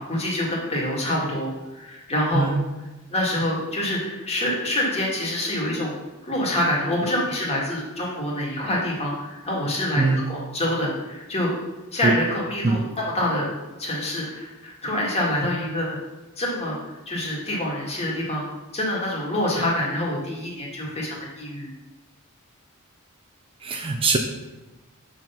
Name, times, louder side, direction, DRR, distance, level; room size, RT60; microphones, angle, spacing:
voice 1, 0.0-2.5 3.1-5.9 6.2-11.5 11.9-13.5 13.8-16.0 16.4-18.4 18.7-21.7, left 1 dB, 30° left, -4 dB, 1.9 m, -26 dB
voice 2, 10.0-10.3 12.0-12.1 12.6-12.8 23.6-24.2, right 3 dB, 25° right, 4 dB, 0.4 m, -22 dB
6.9 x 4.0 x 5.6 m, 1.1 s
head